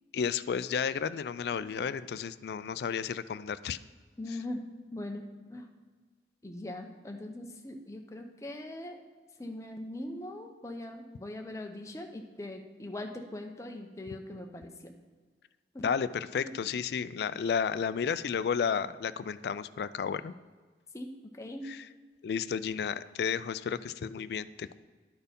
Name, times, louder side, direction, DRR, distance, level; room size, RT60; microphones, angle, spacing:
voice 1, 0.1-3.8 15.8-20.3 22.2-24.8, left 7 dB, 65° left, 15 dB, 0.3 m, -32 dB
voice 2, 4.2-4.6 4.9-5.7 6.4-9.0 9.4-14.9 15.7-15.9 16.4-16.5 20.9-21.1 21.3-21.7, left 1 dB, 15° left, 3 dB, 0.7 m, -41 dB
11.0 x 4.4 x 5.2 m, 1.4 s
head